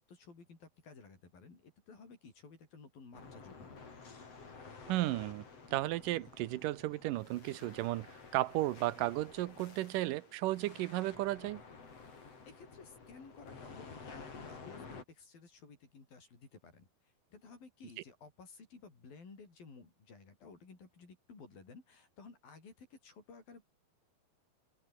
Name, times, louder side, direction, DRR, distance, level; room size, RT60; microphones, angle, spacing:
voice 1, 0.0-3.8 12.5-16.9 17.3-23.7, left 4 dB, 80° left, 8.5 m, -55 dB
sound 1, 3.1-15.0, left 4 dB, 45° left, 5.3 m, -52 dB
voice 2, 4.9-5.4 5.7-11.6, right 17 dB, 75° right, 2.3 m, -34 dB
open air
omnidirectional pair, 4.1 m